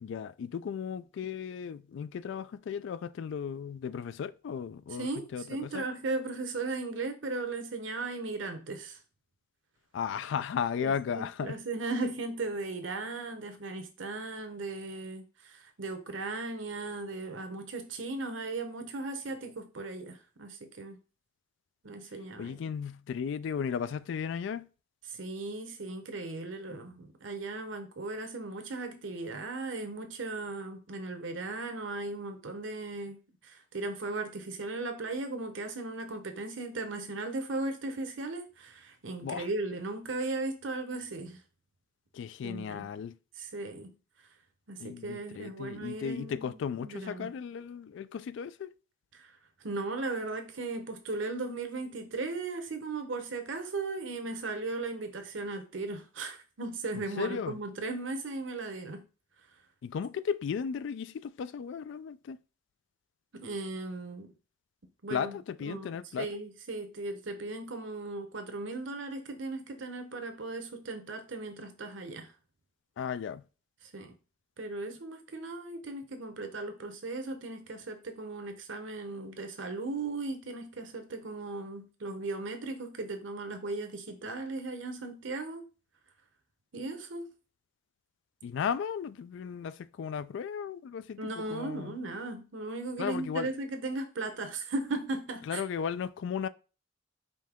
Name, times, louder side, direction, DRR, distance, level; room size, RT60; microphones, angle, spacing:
voice 1, 0.0-5.8 9.9-11.6 22.4-24.7 26.7-26.8 39.2-39.5 42.1-43.2 44.8-48.7 56.9-57.6 59.8-62.4 65.1-66.3 73.0-73.4 88.4-92.0 93.0-93.5 95.4-96.5, left 7 dB, 65° left, 0.3 m, -35 dB
voice 2, 5.0-9.0 10.8-21.0 21.8-22.6 25.1-41.4 42.4-42.9 43.4-43.9 44.7-47.3 49.1-49.3 49.6-59.0 63.3-64.3 65.0-65.4 65.6-72.3 73.9-74.1 74.6-85.7 86.7-87.3 91.2-95.6, right 3 dB, 70° right, 0.9 m, -37 dB
5.2 x 2.8 x 3.6 m
head